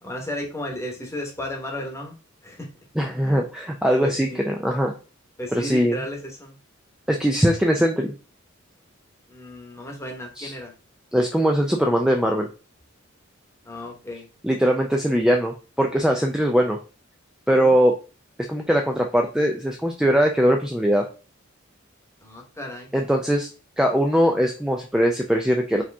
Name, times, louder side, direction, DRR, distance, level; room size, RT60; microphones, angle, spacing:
voice 1, 0.0-2.1 2.4-2.7 3.2-3.4 4.0-4.4 5.4-6.6 9.3-10.7 13.6-14.3 17.5-17.8 22.2-22.9, left 1 dB, 15° left, 1 dB, 1.1 m, -34 dB
voice 2, 3.0-4.9 5.5-6.0 7.1-8.1 10.4-10.5 11.1-12.5 14.4-16.8 17.5-18.0 18.5-21.0 22.9-23.5 23.8-25.8, equal, 5° right, 1 dB, 0.4 m, -21 dB
4.8 x 2.9 x 3.4 m, 0.33 s
head